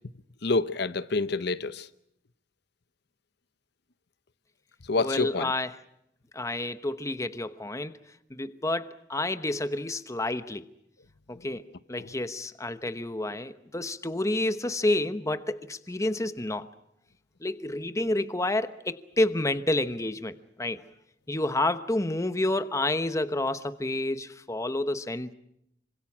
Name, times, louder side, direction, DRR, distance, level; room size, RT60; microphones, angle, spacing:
voice 1, 0.4-1.9 4.9-5.5, left 3 dB, 60° left, 0.9 m, -27 dB
voice 2, 5.0-5.8 6.3-8.0 8.3-10.6 11.3-11.6 11.9-16.7 17.4-20.8 21.3-25.3, left 1 dB, 15° left, 1.0 m, -29 dB
27.0 x 25.5 x 6.1 m
head